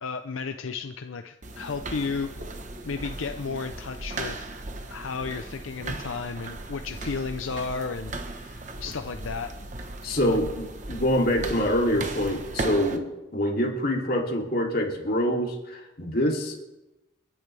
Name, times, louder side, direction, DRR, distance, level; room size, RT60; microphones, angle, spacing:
voice 1, 0.0-2.3 2.8-4.5 4.9-9.5 10.3-10.4, left 4 dB, 85° left, 7 dB, 0.6 m, -33 dB
sound 1, 1.4-13.0, right 2 dB, 40° right, 1.1 m, -36 dB
voice 2, 10.0-13.0 13.3-16.6, equal, 50° left, -1 dB, 2.9 m, -25 dB
30.0 x 10.5 x 3.4 m, 0.99 s
head